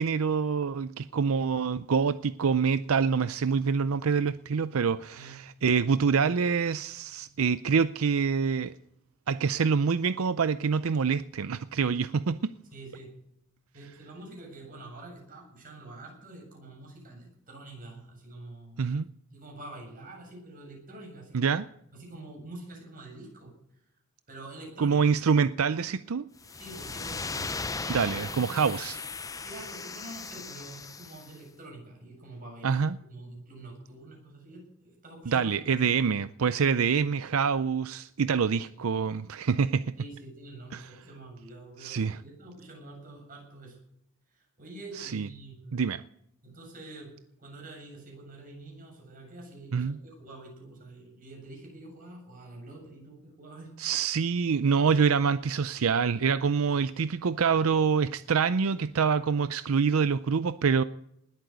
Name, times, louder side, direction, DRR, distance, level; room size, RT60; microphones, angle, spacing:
voice 1, 0.0-8.7 9.3-12.5 18.8-19.0 21.3-21.6 24.8-26.3 27.9-29.0 32.6-33.0 35.3-39.9 40.7-40.9 41.8-42.2 44.9-45.3 45.7-46.0 49.7-50.0 53.8-60.8, right 6 dB, 80° right, 0.5 m, -26 dB
voice 2, 12.7-13.1 13.7-18.8 19.3-21.5 21.9-23.5 24.3-25.0 26.5-28.5 29.4-35.8 38.7-38.9 40.0-43.8 44.3-45.8 46.4-47.1 47.4-53.7, right 2 dB, 40° right, 7.8 m, -46 dB
sound 1, 26.4-31.3, left 4 dB, 15° left, 0.6 m, -37 dB
20.0 x 8.9 x 8.1 m
head